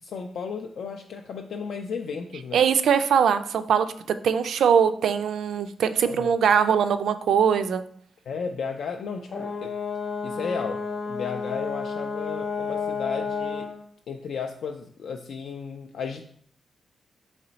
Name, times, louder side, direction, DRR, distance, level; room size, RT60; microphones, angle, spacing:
voice 1, 0.0-2.6 6.0-6.3 8.3-9.7 10.2-13.7 14.1-16.2, left 5 dB, 75° left, 3 dB, 0.3 m, -34 dB
voice 2, 2.5-3.9 4.2-7.8, right 7 dB, 80° right, 10 dB, 0.3 m, -21 dB
Brass instrument, 9.3-13.8, left 5 dB, 45° left, 0.7 m, -31 dB
4.2 x 3.0 x 3.9 m, 0.62 s
wide cardioid pair, 145°, 0 cm